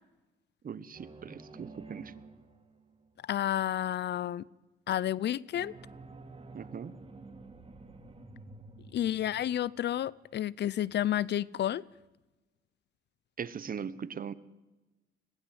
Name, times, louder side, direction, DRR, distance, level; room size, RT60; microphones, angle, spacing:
voice 1, 0.6-2.1 6.5-6.9 13.4-14.3, right 7 dB, 45° right, 1.2 m, -40 dB
sound 1, 0.9-3.2 5.5-10.5, right 3 dB, 30° right, 2.8 m, -50 dB
voice 2, 3.2-4.4 4.9-5.7 8.9-11.8, left 11 dB, 60° left, 0.6 m, -31 dB
21.5 x 16.5 x 8.0 m
cardioid pair, 90°, 20 cm